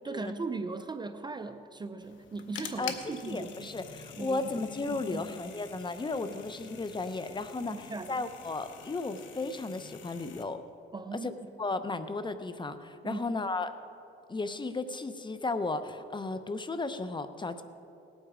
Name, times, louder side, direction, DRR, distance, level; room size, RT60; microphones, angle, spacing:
voice 1, 0.0-3.7 4.2-4.5 4.9-5.3 7.7-8.2 10.9-11.6 13.0-13.2, right 3 dB, 20° right, 10 dB, 0.5 m, -38 dB
sound 1, 2.0-10.4, left 7 dB, 70° left, 1.1 m, -46 dB
voice 2, 2.8-10.6 11.1-13.7 14.3-17.6, left 3 dB, 25° left, 10 dB, 0.8 m, -35 dB
18.5 x 8.9 x 5.0 m, 2.7 s
cardioid pair, 90°, 20 cm